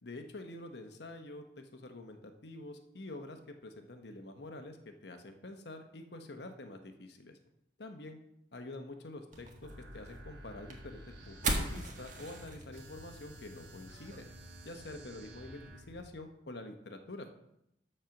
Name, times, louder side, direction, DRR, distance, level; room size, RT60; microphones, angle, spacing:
voice 1, 0.0-7.4 7.8-8.2 8.5-14.2 14.6-17.3, left 2 dB, 65° left, 6 dB, 1.1 m, -47 dB
sound 1, 9.3-16.1, right 2 dB, 45° right, 1.5 m, -41 dB
sound 2, 9.6-15.8, right 2 dB, 85° right, 1.9 m, -54 dB
13.0 x 4.4 x 5.9 m, 0.81 s
head